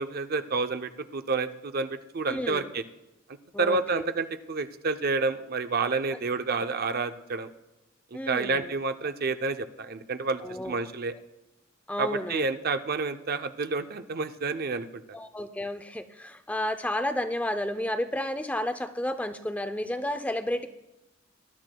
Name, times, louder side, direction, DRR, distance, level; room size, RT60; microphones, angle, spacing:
voice 1, 0.0-2.8 3.6-7.5 8.1-11.1 12.0-15.0, right 4 dB, 50° right, 9 dB, 0.6 m, -29 dB
voice 2, 2.3-2.7 3.5-4.1 8.1-8.7 10.4-10.7 11.9-12.4 15.1-20.7, left 1 dB, 5° left, 8 dB, 0.5 m, -31 dB
20.5 x 12.0 x 2.3 m, 0.95 s
head